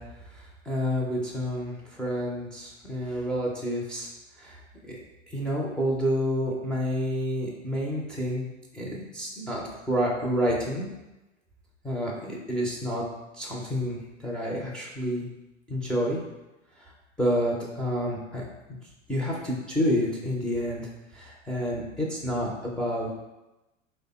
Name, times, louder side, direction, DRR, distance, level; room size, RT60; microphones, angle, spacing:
voice 1, 0.3-4.1 4.4-5.0 5.3-8.5 8.7-10.9 11.8-13.0 13.4-15.3 15.7-16.2 17.2-18.4 18.7-18.8 19.1-23.1, equal, ahead, -5 dB, 0.4 m, -29 dB
3.3 x 2.1 x 4.0 m, 1.0 s
hypercardioid pair, 100°, 39 cm